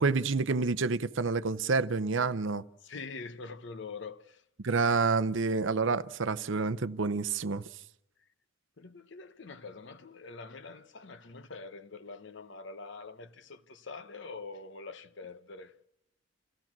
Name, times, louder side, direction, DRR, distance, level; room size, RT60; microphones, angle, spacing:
voice 1, 0.0-2.6 4.6-7.6, right 4 dB, 60° right, 0.7 m, -28 dB
voice 2, 2.8-4.4 8.8-15.7, left 4 dB, 55° left, 0.9 m, -44 dB
28.5 x 16.0 x 6.1 m
head